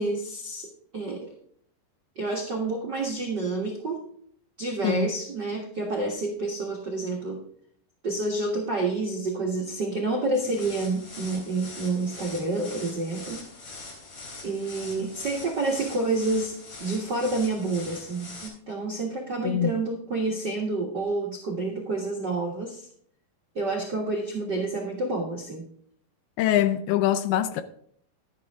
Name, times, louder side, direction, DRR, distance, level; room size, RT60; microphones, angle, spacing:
voice 1, 0.0-1.3 2.1-4.1 4.6-7.4 8.0-13.4 14.4-22.9 23.5-25.7, right 2 dB, 75° right, 0.9 m, -29 dB
sound 1, 10.3-18.5, left 3 dB, 45° left, 4.8 m, -43 dB
voice 2, 26.4-27.6, left 11 dB, 80° left, 2.4 m, -23 dB
12.0 x 10.0 x 3.6 m
omnidirectional pair, 4.8 m